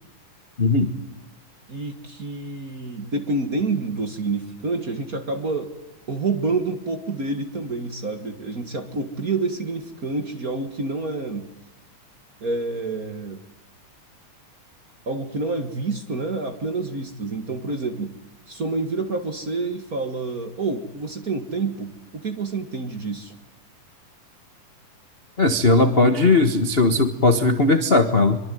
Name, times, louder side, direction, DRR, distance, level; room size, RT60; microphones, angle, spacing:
voice 1, 0.6-0.9 25.4-28.4, left 3 dB, 40° left, 7 dB, 0.9 m, -18 dB
voice 2, 1.7-5.7 6.1-11.5 12.4-13.4 15.0-18.2 18.5-23.3, right 3 dB, 35° right, 7 dB, 1.7 m, -28 dB
24.5 x 24.0 x 9.3 m, 0.97 s
omnidirectional pair, 3.6 m